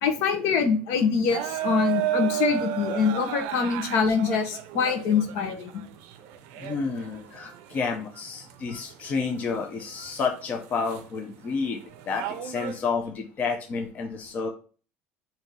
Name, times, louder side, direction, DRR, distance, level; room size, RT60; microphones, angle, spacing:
voice 1, 0.0-5.7, left 6 dB, 65° left, 6 dB, 1.0 m, -24 dB
sound 1, 1.3-7.8 8.3-9.6 10.0-10.3 10.9-11.0 11.5-12.8, right 12 dB, 80° right, 0.5 m, -32 dB
voice 2, 6.6-14.5, left 5 dB, 35° left, 2 dB, 0.7 m, -30 dB
4.1 x 2.8 x 4.6 m, 0.38 s
cardioid pair, 150°, 5 cm